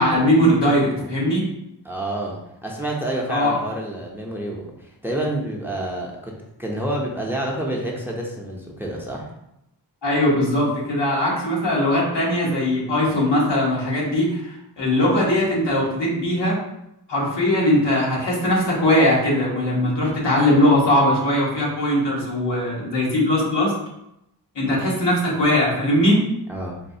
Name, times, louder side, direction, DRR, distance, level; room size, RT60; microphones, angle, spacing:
voice 1, 0.0-1.4 3.3-3.6 10.0-16.5 17.1-23.7 24.5-26.2, left 1 dB, 85° left, -5 dB, 1.2 m, -20 dB
voice 2, 1.8-6.3 6.6-9.3 26.5-26.7, right 1 dB, 5° right, -1 dB, 0.6 m, -28 dB
4.1 x 2.2 x 2.7 m, 0.83 s
wide cardioid pair, 65°, 41 cm